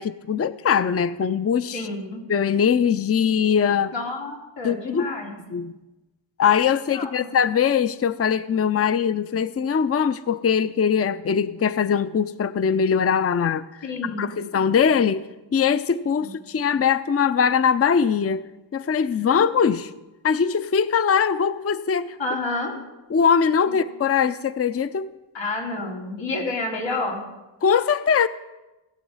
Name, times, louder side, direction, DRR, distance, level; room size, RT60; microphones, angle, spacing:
voice 1, 0.0-1.9 2.3-3.9 4.6-5.1 5.5-5.7 6.4-18.4 18.7-19.9 20.2-22.2 23.1-25.1 27.6-28.3, left 7 dB, 35° left, 14 dB, 0.5 m, -21 dB
voice 2, 1.7-2.3 3.9-5.4 6.9-7.3 13.8-14.4 16.2-16.3 19.2-19.7 22.2-22.7 25.3-27.2, left 2 dB, 90° left, -2 dB, 3.2 m, -30 dB
18.5 x 7.2 x 5.6 m, 1.1 s
cardioid pair, 45°, 44 cm